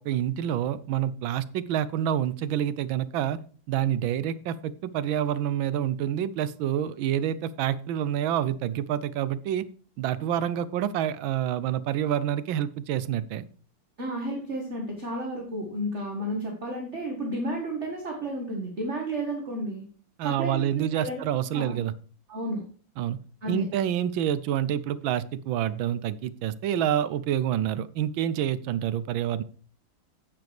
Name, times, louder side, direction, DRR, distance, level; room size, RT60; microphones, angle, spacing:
voice 1, 0.0-3.4 3.7-9.7 10.0-13.4 20.2-21.9 23.0-23.2 23.5-29.4, right 10 dB, 85° right, 16 dB, 1.5 m, -27 dB
voice 2, 14.0-19.8 20.2-21.2 21.5-21.8 22.3-22.6 23.4-23.6, right 1 dB, 35° right, 0 dB, 1.8 m, -32 dB
9.5 x 8.8 x 3.3 m, 0.41 s
omnidirectional pair, 2.1 m